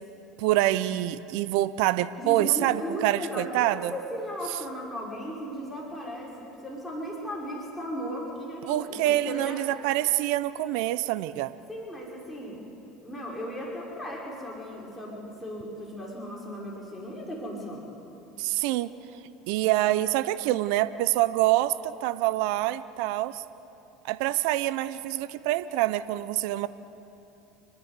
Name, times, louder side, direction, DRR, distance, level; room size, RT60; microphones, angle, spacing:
voice 1, 0.4-3.9 8.7-11.5 18.4-18.9 19.5-23.4 24.0-26.7, right 15 dB, 70° right, 14 dB, 0.6 m, -26 dB
voice 2, 2.2-6.3 6.6-9.6 11.7-12.6 13.0-17.9, equal, 5° left, -5 dB, 5.7 m, -36 dB
29.0 x 11.0 x 8.2 m, 2.8 s
hypercardioid pair, 75°, 0 cm